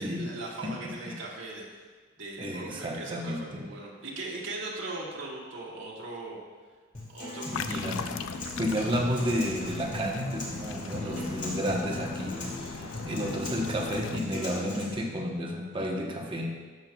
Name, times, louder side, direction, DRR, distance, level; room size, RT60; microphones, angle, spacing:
voice 1, 0.0-1.7 2.2-6.4 7.1-8.0 11.0-11.3, right 2 dB, 75° right, -4 dB, 1.8 m, -39 dB
voice 2, 2.4-3.6 7.4-8.0 8.6-16.5, equal, 25° right, 0 dB, 1.0 m, -31 dB
Acoustic guitar, 6.9-14.9, left 2 dB, 40° left, 2.2 m, -38 dB
sound 1, 7.5-14.2, left 6 dB, 85° left, 0.4 m, -39 dB
12.0 x 7.5 x 2.3 m, 1.5 s
head